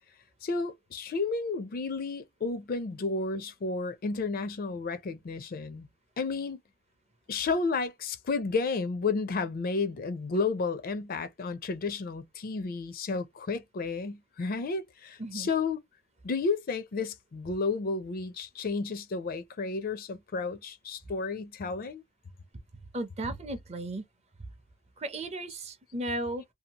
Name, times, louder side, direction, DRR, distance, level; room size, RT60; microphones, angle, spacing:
voice 1, 0.4-5.9 6.2-6.6 7.3-15.8 16.2-22.0, left 4 dB, 40° left, 0.4 m, -32 dB
voice 2, 22.9-24.1 25.0-26.4, right 1 dB, 30° right, 0.5 m, -35 dB
2.7 x 2.3 x 2.8 m
head